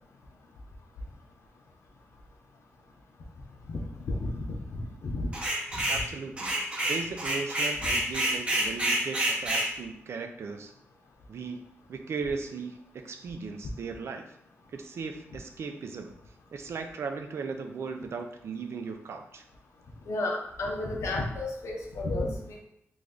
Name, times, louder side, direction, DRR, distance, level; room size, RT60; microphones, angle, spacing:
voice 1, 4.1-4.6 5.0-5.3 5.7-5.8 7.8-7.9 20.1-22.6, left 2 dB, 80° left, 1 dB, 0.7 m, -32 dB
sound 1, 5.3-6.1 6.4-9.7, right 1 dB, 20° right, 0.7 m, -28 dB
voice 2, 5.9-6.6 6.8-10.7 11.3-14.2 14.7-16.1 16.5-19.4, right 5 dB, 65° right, 6 dB, 0.4 m, -37 dB
3.2 x 2.6 x 3.6 m, 0.74 s
wide cardioid pair, 135°, 5 cm